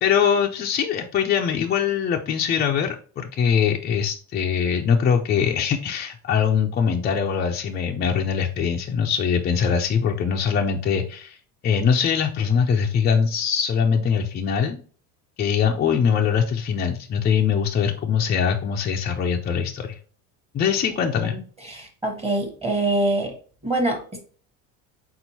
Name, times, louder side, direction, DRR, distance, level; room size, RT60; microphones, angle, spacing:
voice 1, 0.0-11.4 11.6-14.8 15.4-20.0 20.5-21.4, left 7 dB, 25° left, 2 dB, 0.4 m, -22 dB
voice 2, 21.6-23.3 23.6-24.2, right 2 dB, 15° right, 2 dB, 1.0 m, -24 dB
4.4 x 3.8 x 2.7 m, 0.42 s
supercardioid pair, 110°, 41 cm